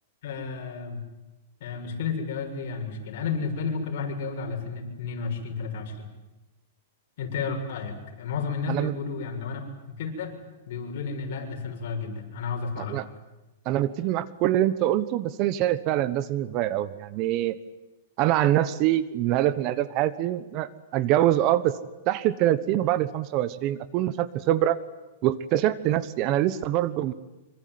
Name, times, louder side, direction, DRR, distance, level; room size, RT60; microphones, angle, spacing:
voice 1, 0.2-1.0 1.6-6.1 7.2-9.6 9.9-10.3 10.7-13.0, left 5 dB, 55° left, 2 dB, 7.0 m, -32 dB
voice 2, 13.6-17.6 18.2-21.7 22.1-24.8 25.2-27.1, right 13 dB, 35° right, 16 dB, 1.1 m, -24 dB
25.5 x 24.5 x 9.5 m, 1.0 s
supercardioid pair, 160°, 0 cm